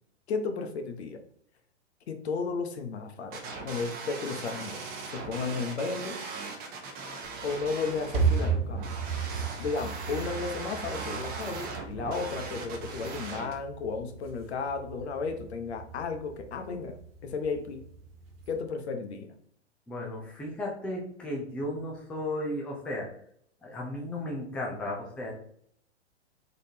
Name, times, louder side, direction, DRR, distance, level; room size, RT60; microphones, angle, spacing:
voice 1, 0.3-1.2 2.1-4.8 5.1-6.2 7.4-9.0 9.6-16.9 17.2-17.9 18.5-19.3, left 4 dB, 65° left, 6 dB, 0.9 m, -34 dB
sound 1, 3.3-13.5, right 4 dB, 25° right, 0.8 m, -39 dB
sound 2, 7.2-18.6, right 5 dB, 55° right, 1.2 m, -35 dB
voice 2, 19.9-23.1 23.6-25.3, left 1 dB, 5° left, -2 dB, 0.5 m, -35 dB
4.0 x 3.4 x 2.8 m, 0.63 s
hypercardioid pair, 125°, 35 cm